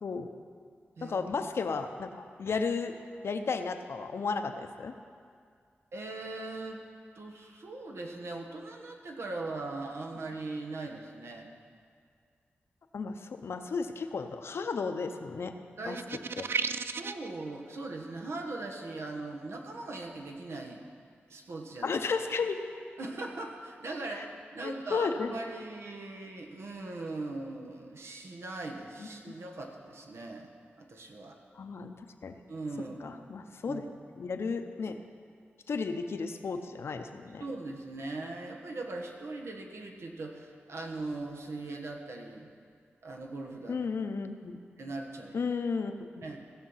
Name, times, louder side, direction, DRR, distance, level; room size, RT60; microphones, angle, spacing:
voice 1, 1.0-2.9 3.2-4.9 12.9-15.5 15.9-16.0 16.4-16.5 21.8-22.6 24.1-24.3 24.9-25.3 31.5-31.9 32.2-32.3 33.0-33.8 34.2-35.0 35.7-37.4 43.7-44.6 45.3-46.4, left 5 dB, 70° left, 7 dB, 0.7 m, -33 dB
voice 2, 5.9-6.8 7.1-11.5 15.8-16.0 16.4-20.8 21.3-22.0 23.0-24.3 24.5-30.5 30.8-31.4 32.5-33.2 33.7-33.8 37.4-42.5 43.0-43.8 44.8-45.5 46.2-46.4, right 2 dB, 75° right, 1 dB, 1.3 m, -40 dB
sound 1, 15.9-17.3, right 5 dB, 60° right, 0.4 m, -33 dB
16.0 x 6.4 x 5.7 m, 2.2 s
cardioid pair, 70°, 4 cm